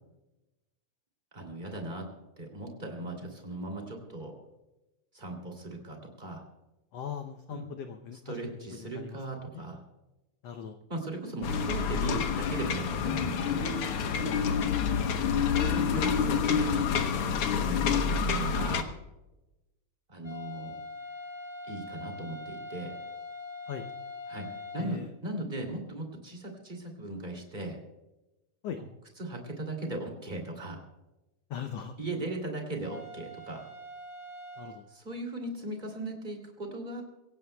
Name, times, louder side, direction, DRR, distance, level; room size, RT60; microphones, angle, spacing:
voice 1, 1.3-2.1 2.4-4.3 5.1-6.4 7.5-7.7 8.2-9.8 10.9-13.7 15.5-18.9 20.1-20.7 21.7-23.0 24.3-24.5 24.7-27.8 28.8-28.9 29.2-30.8 32.0-33.6 34.9-37.0, right 2 dB, 15° right, 2 dB, 2.4 m, -38 dB
voice 2, 6.9-9.2 9.5-9.6 10.4-10.8 14.5-15.2 15.9-16.4 23.7-23.9 24.8-25.1 28.6-28.8 31.5-31.9 34.6-34.9, left 8 dB, 90° left, 7 dB, 1.4 m, -40 dB
sound 1, 11.4-18.8, left 6 dB, 70° left, 1.4 m, -28 dB
sound 2, 20.2-24.9 32.8-34.8, left 2 dB, 25° left, 1.3 m, -43 dB
25.0 x 17.0 x 2.3 m, 1.0 s
omnidirectional pair, 3.8 m